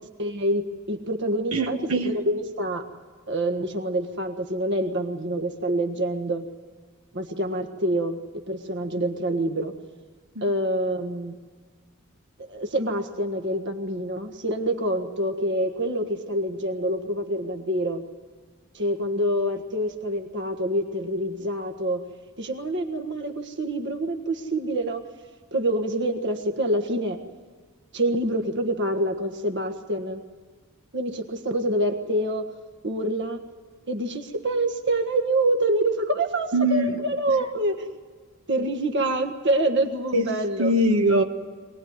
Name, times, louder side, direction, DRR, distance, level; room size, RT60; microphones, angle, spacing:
voice 1, 0.2-1.8 2.0-2.8 3.3-6.4 7.1-9.7 10.4-11.4 12.5-18.0 18.7-22.0 22.4-25.0 25.5-27.2 27.9-30.2 30.9-32.5 32.8-33.4 33.9-37.9 38.5-40.7, right 1 dB, 55° right, 5 dB, 1.6 m, -26 dB
voice 2, 1.5-2.1 10.3-10.4 36.5-37.0 37.3-37.4 40.1-40.3 40.6-41.2, right 1 dB, 80° right, 4 dB, 1.6 m, -22 dB
23.5 x 19.0 x 9.6 m, 1.6 s
head